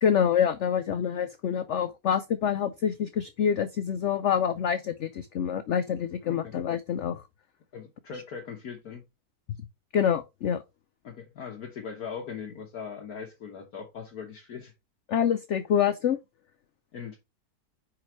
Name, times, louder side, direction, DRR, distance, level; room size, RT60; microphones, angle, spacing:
voice 1, 0.0-7.2 9.9-10.6 15.1-16.2, left 8 dB, 80° left, 0.6 m, -26 dB
voice 2, 6.2-6.5 7.7-9.0 11.0-14.7 16.9-17.2, left 6 dB, 60° left, 1.5 m, -40 dB
5.1 x 4.8 x 4.4 m
omnidirectional pair, 1.9 m